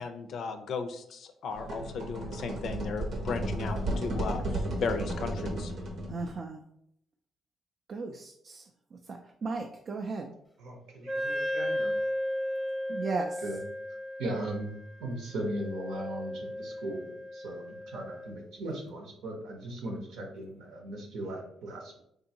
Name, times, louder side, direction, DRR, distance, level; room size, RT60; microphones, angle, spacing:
voice 1, 0.0-5.7, left 5 dB, 65° left, 8 dB, 0.4 m, -35 dB
sound 1, 1.5-6.4, right 1 dB, 65° right, 0.8 m, -34 dB
voice 2, 6.1-6.6 7.9-10.3 12.9-13.4, right 3 dB, 45° right, 3 dB, 0.3 m, -36 dB
voice 3, 10.6-11.9 13.4-13.6 14.2-14.7 15.0-22.0, right 1 dB, 90° right, 1 dB, 0.9 m, -38 dB
Wind instrument woodwind instrument, 11.1-18.4, equal, 5° left, 0.6 m, -35 dB
3.7 x 2.6 x 2.8 m, 0.74 s
cardioid pair, 90°, 0 cm